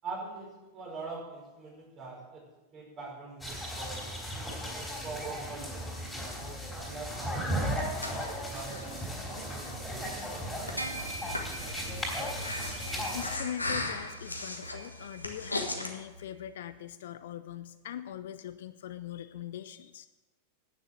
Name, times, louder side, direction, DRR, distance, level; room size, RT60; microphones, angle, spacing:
voice 1, 0.0-2.4 2.7-4.1 4.5-6.3 6.7-8.2 8.5-11.1, right 4 dB, 30° right, -2 dB, 5.2 m, -44 dB
sound 1, 3.4-13.4, equal, 5° left, 3.6 m, -36 dB
Breathing, 7.4-15.9, left 2 dB, 80° left, 1.3 m, -39 dB
sound 2, 10.8-16.4, right 2 dB, 90° right, 0.9 m, -42 dB
voice 2, 13.1-20.1, left 11 dB, 60° left, 13 dB, 0.5 m, -41 dB
10.5 x 8.8 x 6.6 m, 1.1 s
figure-of-eight pair, 90°, 0 cm